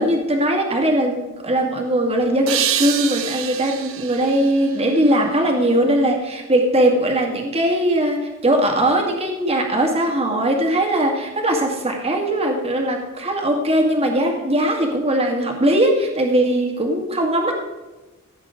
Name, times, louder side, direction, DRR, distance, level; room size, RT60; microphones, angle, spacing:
voice 1, 0.0-17.6, right 1 dB, 30° right, 2 dB, 2.0 m, -20 dB
sound 1, 2.5-5.6, right 9 dB, 65° right, 1.0 m, -27 dB
16.5 x 8.3 x 3.8 m, 1.1 s
head